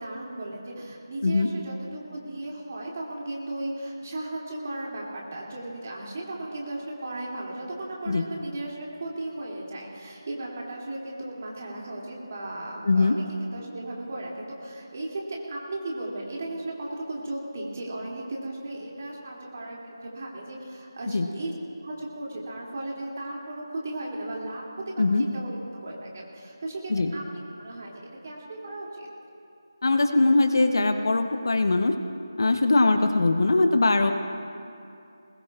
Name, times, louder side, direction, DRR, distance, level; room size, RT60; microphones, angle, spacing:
voice 1, 0.0-21.5 21.8-27.9 28.2-29.1, right 1 dB, 35° right, -3 dB, 2.6 m, -36 dB
voice 2, 12.8-13.2 21.1-21.3 25.0-25.2 26.9-27.1 29.8-31.9 32.4-34.1, left 2 dB, 55° left, 7 dB, 0.8 m, -21 dB
21.0 x 20.0 x 2.4 m, 2.5 s
figure-of-eight pair, 175°, 2 cm